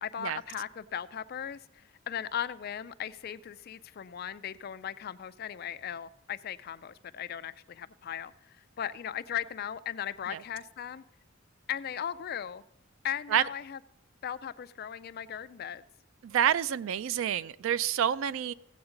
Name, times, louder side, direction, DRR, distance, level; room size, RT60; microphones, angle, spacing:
voice 1, 0.0-11.0 11.7-12.6 13.0-13.8 14.2-15.8, left 9 dB, 50° left, 0.3 m, -37 dB
voice 2, 16.2-18.5, right 9 dB, 75° right, 0.3 m, -28 dB
16.5 x 7.9 x 3.8 m
head